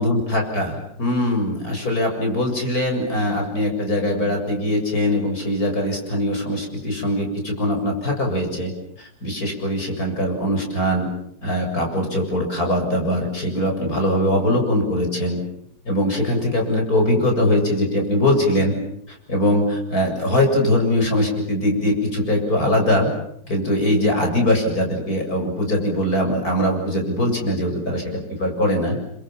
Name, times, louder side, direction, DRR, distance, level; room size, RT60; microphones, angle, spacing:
voice 1, 0.0-8.7 9.0-11.1 11.4-15.4 15.9-18.7 19.3-23.1 23.5-29.0, left 1 dB, 40° left, 3 dB, 7.8 m, -21 dB
29.5 x 26.5 x 7.5 m, 0.72 s
omnidirectional pair, 2.3 m